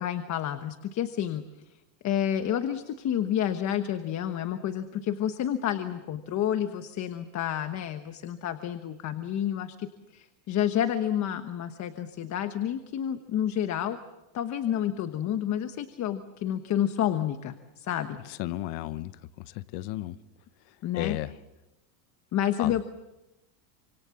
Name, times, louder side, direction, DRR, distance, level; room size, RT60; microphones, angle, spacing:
voice 1, 0.0-1.8 2.0-14.0 14.3-18.2 20.8-21.2 22.3-22.8, left 10 dB, 35° left, 1.2 m, -29 dB
voice 2, 18.4-19.1 19.4-20.2 20.9-21.3 22.6-22.8, left 16 dB, 55° left, 1.1 m, -33 dB
28.5 x 26.0 x 7.1 m
cardioid pair, 150°, 50 cm